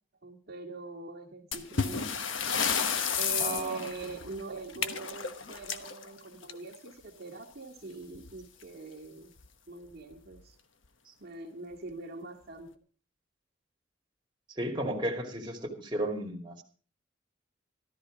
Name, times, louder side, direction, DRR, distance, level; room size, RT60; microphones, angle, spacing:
voice 1, 0.2-2.1 3.2-9.3 9.7-10.6 11.2-12.7, right 3 dB, 55° right, -2 dB, 2.1 m, -42 dB
sound 1, 1.5-6.9 8.1-8.3 8.6-8.7 9.4-9.5 10.1-10.4, left 6 dB, 75° left, 1.2 m, -32 dB
voice 2, 3.4-3.9 14.6-16.6, right 1 dB, 25° right, 0 dB, 2.5 m, -34 dB
14.0 x 13.0 x 5.1 m, 0.41 s
head